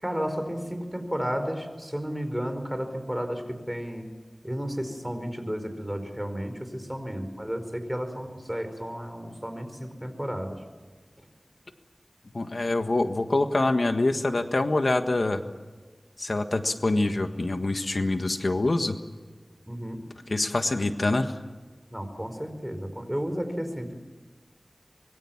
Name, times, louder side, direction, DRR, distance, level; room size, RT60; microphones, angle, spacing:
voice 1, 0.0-4.1 4.4-10.6 19.7-20.1 21.9-23.9, equal, 10° right, 7 dB, 4.8 m, -32 dB
voice 2, 12.3-15.4 16.2-19.0 20.3-21.4, left 2 dB, 75° left, 7 dB, 1.6 m, -25 dB
25.5 x 22.5 x 7.3 m, 1.4 s
wide cardioid pair, 50°, 0 cm